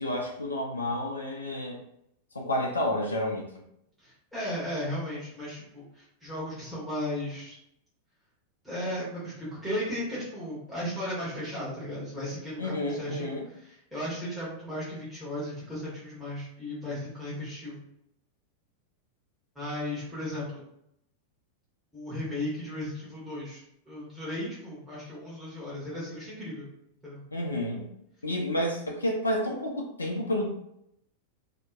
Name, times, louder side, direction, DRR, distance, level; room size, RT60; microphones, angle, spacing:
voice 1, 0.0-1.8 2.3-3.5 12.6-13.5 27.3-27.9 28.2-30.5, left 1 dB, 75° left, 0 dB, 0.4 m, -30 dB
voice 2, 4.0-7.5 8.6-17.8 19.5-20.6 21.9-26.7 27.0-27.2, left 1 dB, 5° right, -9 dB, 1.0 m, -35 dB
2.7 x 2.1 x 2.3 m, 0.77 s
figure-of-eight pair, 90°, 0 cm